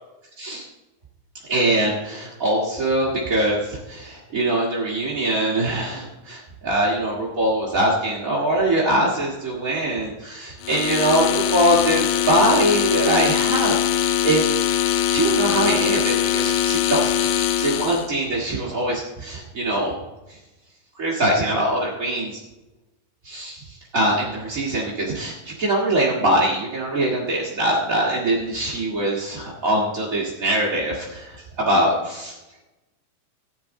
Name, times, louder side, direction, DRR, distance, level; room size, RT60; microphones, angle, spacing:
voice 1, 1.5-14.4 15.1-17.1 17.6-19.9 21.0-22.4 23.2-32.6, right 1 dB, 45° right, -5 dB, 1.1 m, -22 dB
sound 1, 10.6-18.1, left 11 dB, 80° left, 1.8 m, -22 dB
15.0 x 9.4 x 3.6 m, 1.1 s
omnidirectional pair, 4.0 m